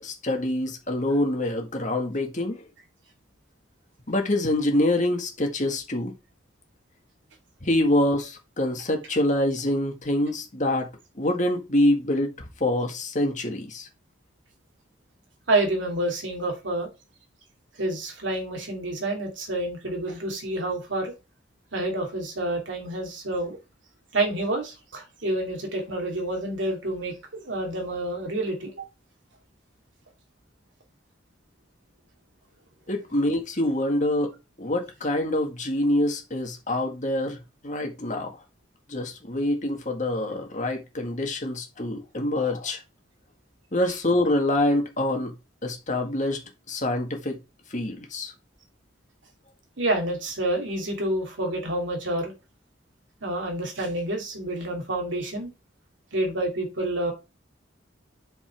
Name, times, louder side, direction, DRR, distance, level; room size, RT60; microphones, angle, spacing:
voice 1, 0.0-2.7 4.1-6.1 7.6-10.9 11.2-12.3 12.6-13.9 32.9-37.4 37.6-38.4 38.9-42.8 43.7-45.3 45.6-47.4 47.7-48.3, left 1 dB, 40° left, 1.8 m, -25 dB
voice 2, 15.5-16.9 17.8-21.1 21.7-23.6 24.1-27.1 27.4-28.8 49.8-52.3 53.2-55.5 56.1-57.1, right 1 dB, 80° right, 2.8 m, -28 dB
5.5 x 5.5 x 4.6 m
head